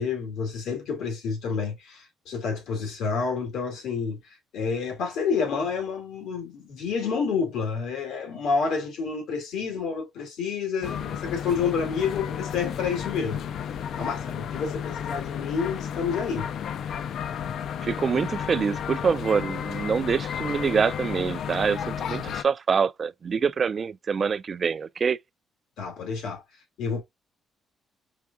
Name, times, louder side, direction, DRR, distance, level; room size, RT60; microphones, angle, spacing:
voice 1, 0.0-4.2 4.5-13.4 14.0-16.5 25.8-26.4 26.8-27.0, left 5 dB, 85° left, 1.9 m, -29 dB
sound 1, 10.8-22.4, left 8 dB, 70° left, 0.4 m, -32 dB
voice 2, 17.8-25.2, right 6 dB, 45° right, 0.3 m, -25 dB
4.8 x 3.5 x 2.2 m
cardioid pair, 90°, 0 cm